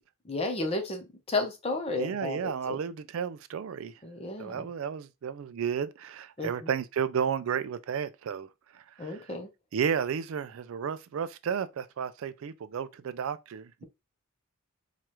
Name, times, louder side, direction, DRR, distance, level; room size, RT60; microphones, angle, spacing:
voice 1, 0.3-2.8 4.0-4.7 6.4-6.5 9.0-9.5, left 2 dB, 25° left, 0.7 m, -32 dB
voice 2, 2.0-3.9 4.4-9.4 9.7-13.8, right 7 dB, 65° right, 0.3 m, -33 dB
4.7 x 2.4 x 2.9 m
head